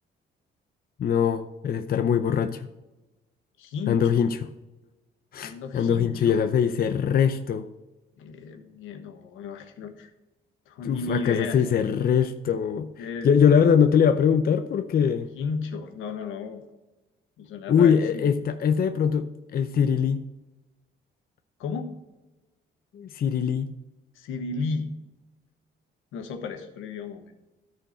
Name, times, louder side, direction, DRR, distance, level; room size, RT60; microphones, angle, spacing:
voice 1, 1.0-2.7 3.9-4.4 5.3-7.6 10.8-12.9 13.2-15.3 17.7-20.2 22.9-23.7, left 7 dB, 50° left, 9 dB, 0.6 m, -22 dB
voice 2, 3.6-4.2 5.4-6.4 8.2-10.1 10.7-11.6 13.0-13.3 15.4-16.6 17.4-18.3 21.6-21.9 24.1-24.9 26.1-27.2, left 4 dB, 90° left, 6 dB, 1.2 m, -34 dB
13.0 x 4.5 x 4.4 m, 1.1 s
cardioid pair, 90°, 20 cm